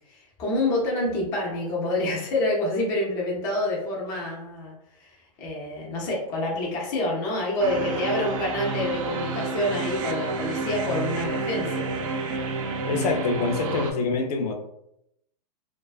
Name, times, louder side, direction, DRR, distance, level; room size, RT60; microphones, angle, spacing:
voice 1, 0.1-4.7 5.0-11.9, left 1 dB, 15° left, -4 dB, 0.3 m, -27 dB
sound 1, 7.6-13.9, right 3 dB, 55° right, 0.4 m, -29 dB
voice 2, 12.9-14.6, left 4 dB, 75° left, 4 dB, 0.5 m, -26 dB
2.3 x 2.3 x 2.3 m, 0.79 s
supercardioid pair, 170°, 20 cm